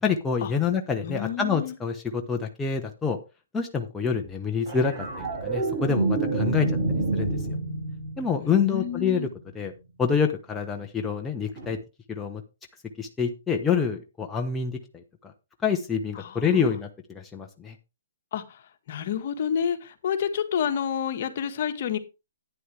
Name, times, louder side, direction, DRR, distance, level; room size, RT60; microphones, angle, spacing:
voice 1, 0.0-3.2 3.5-6.7 7.1-7.3 8.2-9.3 9.5-9.7 10.0-11.8 12.1-12.4 13.0-15.3 15.6-17.7, left 6 dB, 10° left, 2 dB, 1.0 m, -27 dB
voice 2, 1.0-1.8 8.4-9.3 16.1-16.7 18.3-22.0, left 8 dB, 50° left, 7 dB, 1.6 m, -29 dB
sound 1, 4.7-9.2 11.6-11.7, right 2 dB, 45° right, 6.6 m, -28 dB
11.0 x 9.5 x 3.4 m, 0.28 s
hypercardioid pair, 135°, 0 cm